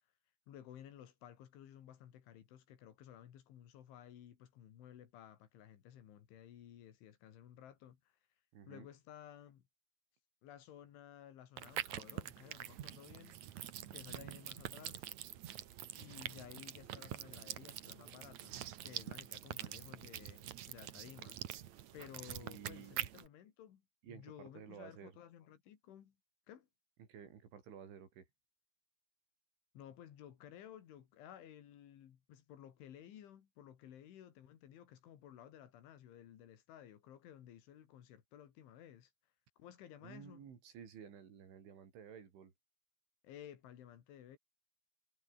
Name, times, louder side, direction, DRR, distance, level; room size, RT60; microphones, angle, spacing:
voice 1, 0.5-8.2 8.7-9.6 10.4-13.4 13.9-15.1 15.9-21.4 21.9-23.8 24.1-26.2 26.5-26.7 29.7-39.1 39.6-40.5 43.2-44.4, left 10 dB, 85° left, 5.0 m, -55 dB
voice 2, 8.5-8.9 22.4-23.0 24.0-25.2 27.0-28.3 40.0-42.5, right 7 dB, 85° right, 6.7 m, -53 dB
sound 1, 11.6-23.3, right 12 dB, 70° right, 1.8 m, -45 dB
omnidirectional pair, 5.3 m